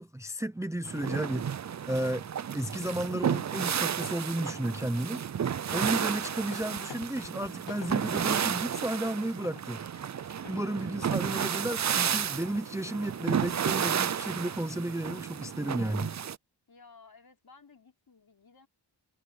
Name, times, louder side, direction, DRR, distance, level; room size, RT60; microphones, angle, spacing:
voice 1, 0.0-1.5 1.9-5.2 5.7-9.8 10.5-16.1, right 1 dB, 5° right, 0.7 m, -33 dB
sound 1, 0.9-16.4, right 8 dB, 40° right, 0.5 m, -32 dB
sound 2, 2.1-4.1 6.4-13.7, left 9 dB, 80° left, 0.9 m, -51 dB
voice 2, 16.7-18.7, left 4 dB, 60° left, 5.0 m, -56 dB
wide cardioid pair, 120°, 42 cm